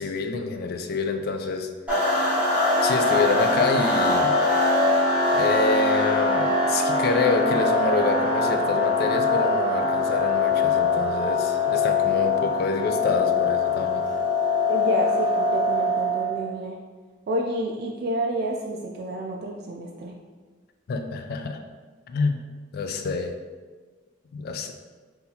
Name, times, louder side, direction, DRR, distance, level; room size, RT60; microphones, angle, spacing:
voice 1, 0.0-1.7 2.8-4.4 5.3-14.1 20.9-21.6 22.1-22.4 22.7-23.3 24.3-24.7, left 4 dB, 55° left, 5 dB, 0.3 m, -27 dB
sound 1, 1.9-16.4, left 2 dB, 10° right, 0.9 m, -22 dB
voice 2, 14.7-16.8 17.3-20.1, right 1 dB, 55° right, 0 dB, 0.3 m, -29 dB
3.9 x 2.7 x 2.7 m, 1.4 s
head